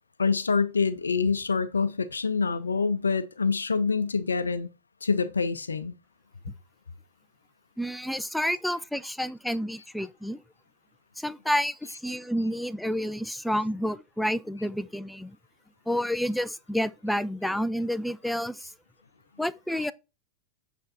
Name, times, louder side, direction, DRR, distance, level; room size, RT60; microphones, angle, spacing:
voice 1, 0.2-4.7 5.0-5.9, left 5 dB, 75° left, 0.5 m, -26 dB
voice 2, 7.8-10.4 11.2-15.4 15.9-18.7 19.4-19.9, equal, ahead, 0.4 m, -29 dB
8.7 x 3.5 x 4.1 m
figure-of-eight pair, 90°, 0 cm